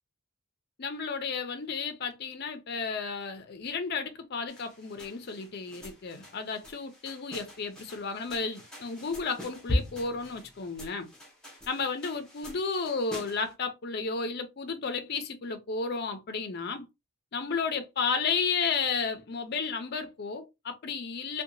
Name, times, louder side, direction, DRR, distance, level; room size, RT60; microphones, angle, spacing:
voice 1, 0.8-11.1 11.7-16.9 17.3-21.4, left 5 dB, 45° left, 0.5 m, -33 dB
sound 1, 4.5-13.5, left 1 dB, 5° left, 0.7 m, -39 dB
2.8 x 2.2 x 2.5 m
head